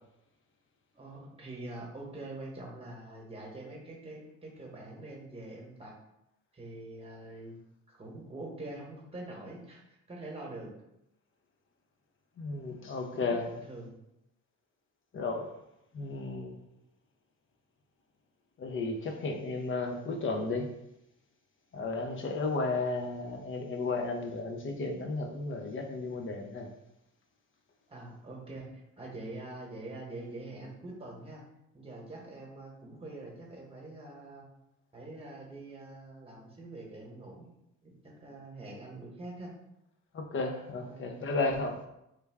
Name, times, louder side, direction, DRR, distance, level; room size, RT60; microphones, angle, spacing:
voice 1, 0.9-5.9 6.5-7.6 7.9-10.7 13.1-13.9 27.9-28.7 29.0-31.4 31.7-34.5 34.9-37.5 37.8-39.5 40.8-41.2, right 2 dB, 20° right, -1 dB, 1.1 m, -44 dB
voice 2, 12.4-13.6 15.1-15.5 15.9-16.6 18.6-20.7 21.7-26.7 40.1-41.8, left 3 dB, 40° left, 4 dB, 0.5 m, -33 dB
3.2 x 2.2 x 3.4 m, 0.85 s
cardioid pair, 90°, 30 cm